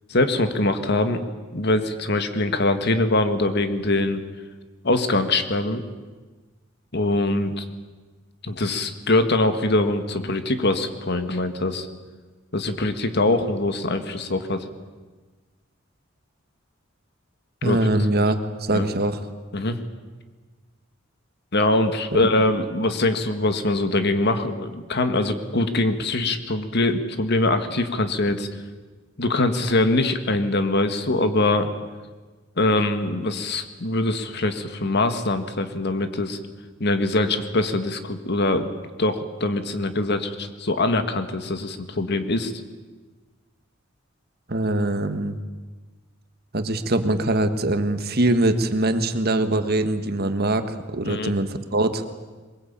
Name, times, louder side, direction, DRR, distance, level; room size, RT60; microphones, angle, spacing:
voice 1, 0.1-1.2 1.5-4.2 4.8-5.8 6.9-7.6 8.4-11.9 12.5-14.7 17.6-17.8 18.2-18.3 18.7-18.9 19.5-19.8 21.5-28.5 29.2-31.7 32.6-36.4 36.8-38.7 39.0-42.5 51.0-51.3, left 2 dB, 55° left, 8 dB, 1.9 m, -23 dB
voice 2, 17.6-19.2 44.5-45.4 46.5-52.0, right 2 dB, 50° right, 9 dB, 1.6 m, -23 dB
23.0 x 21.0 x 8.8 m, 1.3 s
head